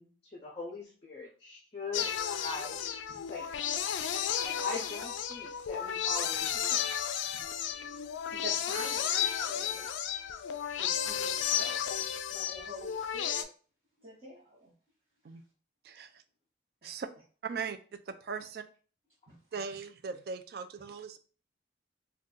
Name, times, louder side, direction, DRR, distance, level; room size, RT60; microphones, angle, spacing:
voice 1, 0.0-2.8 3.3-3.7 4.4-6.8, left 3 dB, 30° left, -3 dB, 0.5 m, -41 dB
sound 1, 1.9-13.4, left 9 dB, 90° left, 0.3 m, -33 dB
voice 2, 8.3-9.9 10.8-13.5 14.0-14.7 16.8-17.0 19.3-19.4, equal, 40° right, -7 dB, 0.8 m, -46 dB
voice 3, 15.8-16.2 16.8-17.1 17.4-18.6 19.5-21.2, right 5 dB, 55° right, 11 dB, 0.3 m, -39 dB
2.5 x 2.2 x 3.6 m, 0.39 s
head